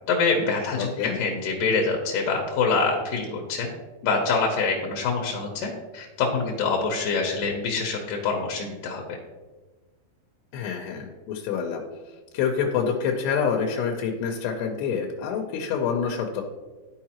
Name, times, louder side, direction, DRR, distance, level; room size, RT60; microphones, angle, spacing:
voice 1, 0.1-3.7 4.0-9.0, left 4 dB, 75° left, 0 dB, 2.1 m, -25 dB
voice 2, 0.8-1.2 10.5-11.8 12.3-16.4, left 6 dB, 90° left, 1 dB, 2.8 m, -27 dB
13.0 x 4.7 x 2.9 m, 1.3 s
omnidirectional pair, 4.7 m